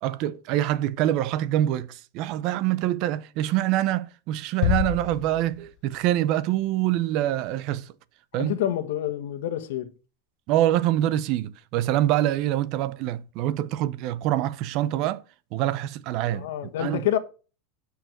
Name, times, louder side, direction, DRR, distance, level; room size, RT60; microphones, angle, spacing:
voice 1, 0.0-7.9 8.3-8.5 10.5-15.2 15.5-17.2, right 13 dB, 40° right, 0.6 m, -25 dB
sound 1, 4.6-6.2, left 12 dB, 45° left, 0.9 m, -28 dB
voice 2, 8.4-9.9 16.3-17.2, left 11 dB, 70° left, 1.4 m, -27 dB
9.3 x 6.5 x 6.5 m
supercardioid pair, 170°, 0 cm